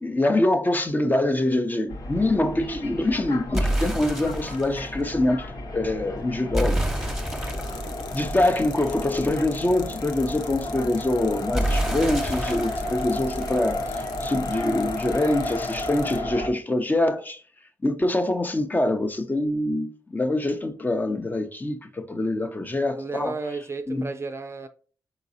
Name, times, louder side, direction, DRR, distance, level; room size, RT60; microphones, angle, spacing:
voice 1, 0.0-5.5 5.7-6.8 8.1-17.4 17.8-23.3 23.9-24.1, left 1 dB, 25° left, 0.6 m, -24 dB
sound 1, 1.9-16.5, left 1 dB, 65° left, 0.9 m, -33 dB
sound 2, 3.5-4.8 6.5-9.3 11.5-14.3, right 1 dB, 5° right, 1.0 m, -29 dB
sound 3, 7.2-16.2, left 8 dB, 90° left, 0.4 m, -45 dB
voice 2, 8.2-8.5 22.9-24.7, right 4 dB, 35° right, 0.5 m, -33 dB
4.0 x 3.9 x 2.6 m
supercardioid pair, 50°, 7 cm